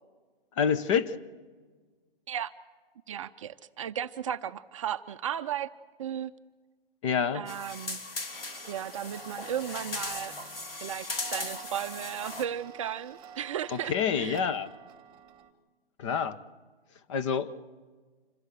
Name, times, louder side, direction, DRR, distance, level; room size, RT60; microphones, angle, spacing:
voice 1, 0.6-1.2 7.0-7.4 13.9-14.7 16.0-16.4 17.1-17.5, left 7 dB, 30° left, 13 dB, 0.9 m, -27 dB
voice 2, 3.1-5.7 6.0-6.3 7.3-8.0 8.7-10.4 10.8-14.4, right 9 dB, 35° right, 10 dB, 0.6 m, -35 dB
sound 1, 7.5-12.4, left 3 dB, 75° left, 3.3 m, -38 dB
Tick-tock, 8.3-15.5, right 8 dB, 15° right, 1.5 m, -49 dB
26.5 x 17.5 x 6.8 m, 1.4 s
hypercardioid pair, 140°, 29 cm